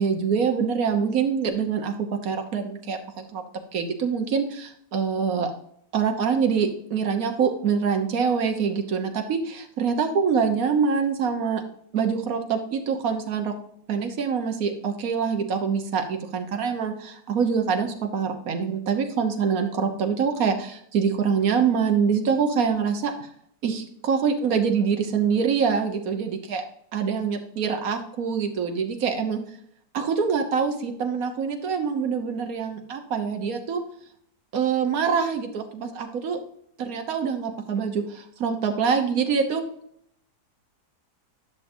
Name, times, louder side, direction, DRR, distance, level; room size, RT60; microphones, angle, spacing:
voice 1, 0.0-3.4 3.7-5.5 5.9-11.6 11.9-13.5 13.9-23.3 23.6-26.6 26.9-29.4 29.9-33.8 34.5-36.4 36.8-39.6, right 6 dB, 60° right, 5 dB, 1.5 m, -25 dB
11.5 x 6.4 x 2.7 m, 0.68 s
omnidirectional pair, 1.7 m